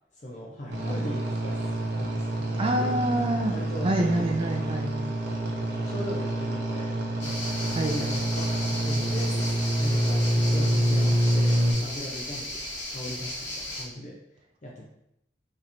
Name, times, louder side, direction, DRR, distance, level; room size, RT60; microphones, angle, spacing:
voice 1, 0.1-1.7 2.0-2.9 3.5-4.3 5.3-5.5 5.8-6.9 7.2-7.5 7.8-9.3 9.8-14.2 14.6-14.9, equal, 45° left, -3 dB, 0.6 m, -38 dB
sound 1, 0.7-11.7, right 1 dB, 70° right, 0.8 m, -27 dB
voice 2, 2.6-3.6 3.8-5.1 7.7-8.1, right 1 dB, 30° right, 3 dB, 0.3 m, -27 dB
sound 2, 7.2-13.8, left 1 dB, 75° left, 0.9 m, -36 dB
3.0 x 2.6 x 4.1 m, 0.78 s
head